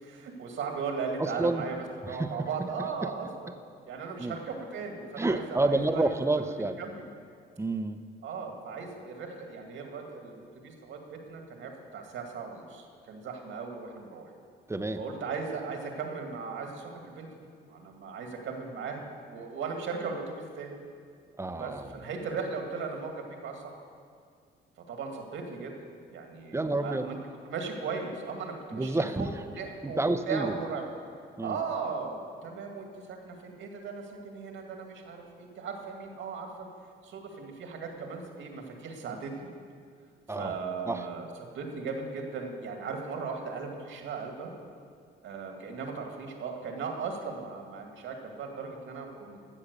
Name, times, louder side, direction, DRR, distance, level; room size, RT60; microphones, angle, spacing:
voice 1, 0.0-3.5 3.9-6.1 6.8-7.0 8.2-14.3 15.0-20.7 21.6-23.8 24.9-25.7 26.1-27.2 27.5-29.3 29.6-30.9 31.4-36.7 37.0-39.5 40.3-41.3 41.5-44.5 45.2-49.4, right 5 dB, 75° right, 3 dB, 2.1 m, -37 dB
voice 2, 1.2-1.6 2.0-2.5 3.0-3.1 4.2-4.4 5.2-6.8 7.6-8.0 14.7-15.0 21.4-21.9 26.5-27.1 28.7-29.3 29.8-30.6 31.4-31.6 40.3-40.6 40.9-41.0, right 2 dB, 15° right, 9 dB, 0.8 m, -29 dB
14.0 x 7.4 x 6.8 m, 2.2 s
cardioid pair, 90°, 20 cm